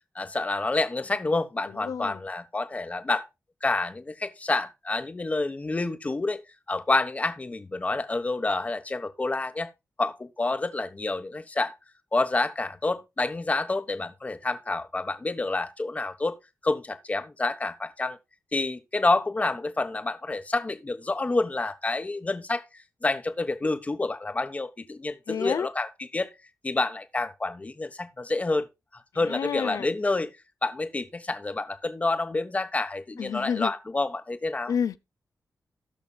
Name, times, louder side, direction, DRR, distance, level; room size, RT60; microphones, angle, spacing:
voice 1, 0.1-3.3 3.6-6.4 6.7-9.7 10.0-11.7 12.1-16.4 16.6-18.2 18.5-22.6 23.0-26.3 26.6-28.7 29.1-30.3 30.6-34.7, left 2 dB, 25° left, 1.1 m, -28 dB
voice 2, 1.7-2.2 25.3-25.7 29.3-29.9 33.2-33.7 34.7-35.0, left 7 dB, 75° left, 0.7 m, -29 dB
18.0 x 6.2 x 2.3 m
wide cardioid pair, 105°, 6 cm